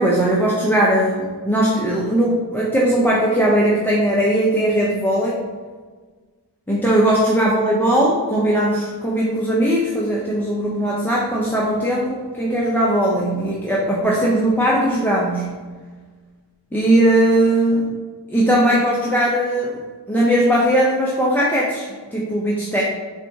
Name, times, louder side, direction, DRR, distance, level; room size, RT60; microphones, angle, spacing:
voice 1, 0.0-5.4 6.7-15.5 16.7-17.9 18.3-19.8 20.1-22.8, right 1 dB, 5° left, -5 dB, 0.4 m, -19 dB
3.9 x 2.8 x 3.4 m, 1.4 s
wide cardioid pair, 120°, 42 cm